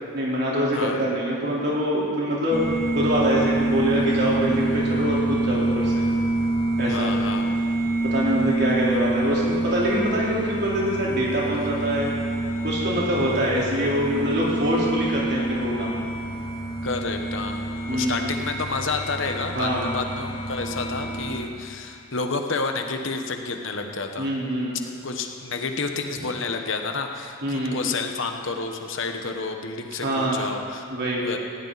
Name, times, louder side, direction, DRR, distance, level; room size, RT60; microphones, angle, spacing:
voice 1, 0.1-6.0 6.8-7.1 8.0-12.1 12.6-16.0 17.9-18.3 19.5-19.9 24.2-24.8 27.4-27.8 30.0-30.4 30.9-31.3, equal, 50° right, -6 dB, 4.0 m, -24 dB
sound 1, 2.5-21.4, right 2 dB, 35° left, 2.5 m, -27 dB
voice 2, 6.9-7.6 16.8-24.3 25.0-30.8 31.2-31.4, left 4 dB, 60° left, 4 dB, 1.1 m, -30 dB
19.0 x 16.5 x 4.1 m, 2.5 s
head